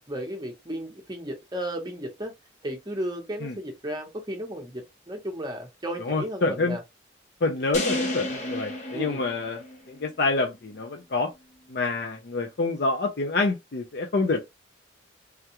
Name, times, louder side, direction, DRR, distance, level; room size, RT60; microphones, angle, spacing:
voice 1, 0.1-2.3 2.6-6.8 8.9-9.2, right 1 dB, 20° right, 0.8 m, -34 dB
voice 2, 6.1-6.8 7.4-11.3 11.7-14.4, left 3 dB, 55° left, 0.5 m, -27 dB
sound 1, 7.7-10.0, left 2 dB, 40° left, 0.9 m, -32 dB
3.4 x 2.3 x 2.8 m
head